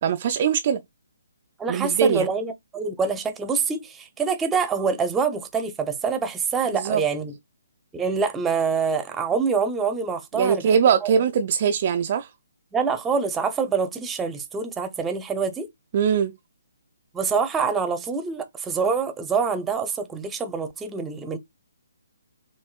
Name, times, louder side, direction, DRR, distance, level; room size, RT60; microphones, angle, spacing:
voice 1, 0.0-0.8 1.7-2.3 6.7-7.0 10.4-12.3 15.9-16.3, right 7 dB, 40° right, 0.4 m, -21 dB
voice 2, 1.6-7.3 7.9-10.6 11.0-11.1 12.7-15.7 17.1-21.4, right 5 dB, 10° right, 0.8 m, -25 dB
6.7 x 2.6 x 2.4 m
figure-of-eight pair, 135°, 0 cm